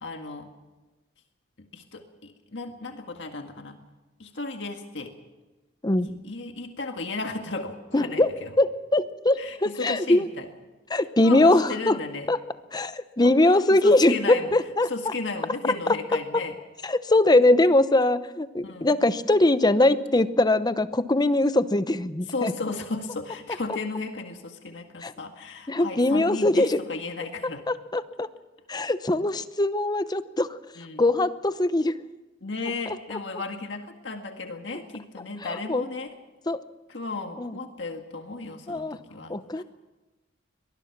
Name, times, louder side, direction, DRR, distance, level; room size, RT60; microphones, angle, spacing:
voice 1, 0.0-0.5 1.6-3.8 4.2-5.1 6.1-8.5 9.4-10.5 11.2-12.3 13.2-13.3 13.7-14.5 14.9-16.6 18.6-18.9 22.3-27.6 30.8-31.0 32.4-36.1 36.9-39.6, left 3 dB, 70° left, 5 dB, 1.8 m, -34 dB
voice 2, 7.9-8.3 8.6-10.3 10.9-12.0 12.3-12.4 12.7-14.9 16.3-16.4 16.8-22.5 25.0-25.1 25.7-26.8 27.7-28.3 28.7-30.5 31.0-32.0 33.1-33.2 35.4-35.9 36.5-36.6 37.4-37.6 38.7-39.0 39.3-39.6, left 2 dB, 20° left, 13 dB, 0.8 m, -22 dB
23.5 x 19.5 x 6.0 m, 1.1 s
head